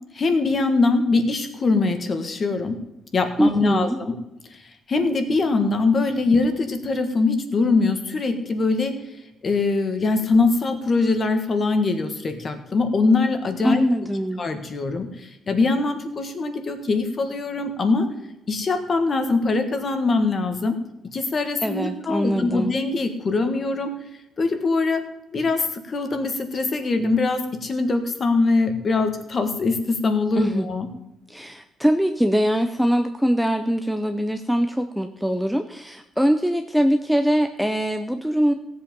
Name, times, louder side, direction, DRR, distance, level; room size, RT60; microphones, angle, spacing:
voice 1, 0.1-2.8 3.1-4.1 4.9-8.9 9.4-13.8 14.4-15.1 15.5-18.1 18.5-20.7 21.1-23.9 24.4-25.0 25.3-30.9, left 3 dB, 30° left, 7 dB, 1.5 m, -22 dB
voice 2, 3.4-4.0 13.6-14.4 21.6-22.7 30.4-30.7 31.3-38.5, equal, ahead, 7 dB, 0.5 m, -22 dB
17.0 x 7.9 x 5.3 m, 0.91 s
cardioid pair, 170°, 0 cm